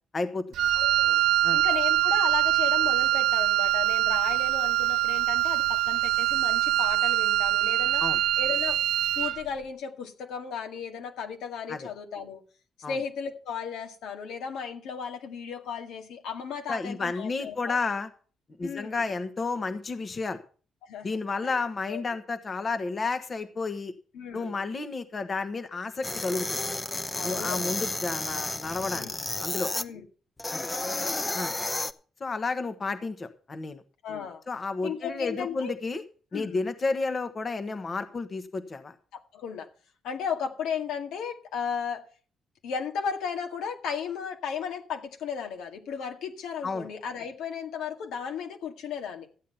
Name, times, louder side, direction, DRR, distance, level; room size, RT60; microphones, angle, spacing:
voice 1, 0.1-0.4 1.4-1.6 8.0-8.2 11.7-11.9 12.8-13.0 16.7-18.1 18.6-20.4 21.0-23.9 24.3-26.6 27.2-29.1 29.4-29.7 30.5-30.7 31.3-31.5 32.2-33.8 34.5-36.0 36.3-38.9 46.6-46.9, left 3 dB, 35° left, 1.3 m, -31 dB
Wind instrument woodwind instrument, 0.5-9.4, right 13 dB, 85° right, 0.5 m, -24 dB
voice 2, 0.7-1.2 1.5-8.0 8.4-8.8 9.2-12.4 12.9-17.8 18.6-19.0 20.8-21.1 21.4-21.6 21.9-22.2 24.1-24.6 27.2-27.7 28.9-29.2 29.8-30.0 30.7-31.2 34.0-34.4 34.8-35.7 36.3-36.6 39.1-39.7 40.0-42.0 42.6-49.3, left 6 dB, 85° left, 2.0 m, -35 dB
sound 1, 26.0-29.9 30.4-31.9, left 2 dB, 20° left, 0.8 m, -32 dB
13.5 x 8.4 x 5.6 m
cardioid pair, 90°, 0 cm